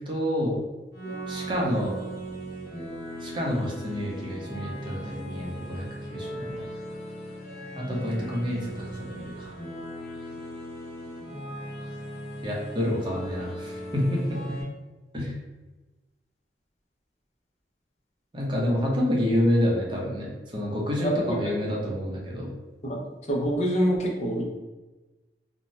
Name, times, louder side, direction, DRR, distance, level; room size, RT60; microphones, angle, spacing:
voice 1, 0.1-0.6 1.3-2.0 3.2-6.7 7.8-9.5 12.4-14.6 15.1-15.3 18.3-22.5, equal, 30° right, -3 dB, 0.6 m, -28 dB
sound 1, 0.9-14.6, right 1 dB, 60° left, 0.9 m, -38 dB
voice 2, 21.0-21.4 22.8-23.0 23.3-24.4, right 1 dB, 40° left, -1 dB, 0.5 m, -25 dB
2.6 x 2.1 x 3.0 m, 1.2 s
head